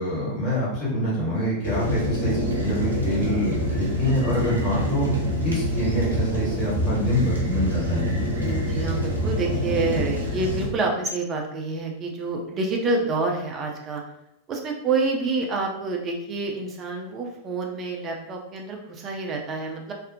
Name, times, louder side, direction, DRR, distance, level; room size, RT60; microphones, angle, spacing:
voice 1, 0.0-5.1 5.4-8.0, equal, 30° left, -7 dB, 1.4 m, -26 dB
sound 1, 1.6-10.7, equal, 80° right, 0.5 m, -26 dB
voice 2, 8.4-14.0 14.5-19.9, right 3 dB, 30° right, 1 dB, 0.5 m, -28 dB
2.5 x 2.0 x 2.6 m, 0.80 s
figure-of-eight pair, 90°, 0 cm